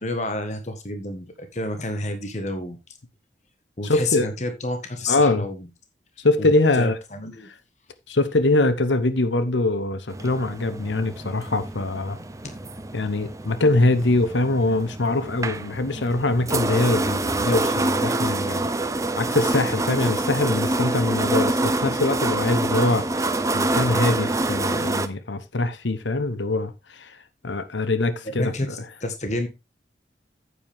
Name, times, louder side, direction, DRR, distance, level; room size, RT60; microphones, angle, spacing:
voice 1, 0.0-2.8 3.8-5.7 6.4-7.5 28.4-29.5, left 2 dB, 40° left, 1.6 m, -29 dB
voice 2, 3.8-4.3 5.1-5.5 6.2-7.0 8.1-12.2 12.9-18.7 19.2-27.2 27.4-28.5, left 2 dB, 90° left, 1.0 m, -23 dB
sound 1, 10.1-25.1, right 2 dB, 15° right, 0.6 m, -26 dB
9.6 x 8.3 x 3.6 m
head